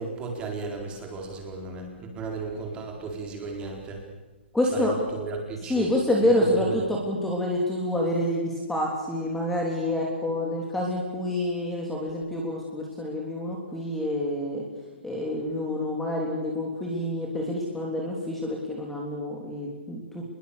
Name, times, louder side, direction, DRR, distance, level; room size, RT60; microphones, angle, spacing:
voice 1, 0.0-4.0 4.7-5.9 6.2-6.8, right 3 dB, 15° right, 2 dB, 4.3 m, -35 dB
voice 2, 4.5-4.9 5.6-14.6 15.0-20.2, left 1 dB, 5° left, -2 dB, 3.4 m, -27 dB
27.0 x 22.0 x 7.0 m, 1.2 s
hypercardioid pair, 155°, 6 cm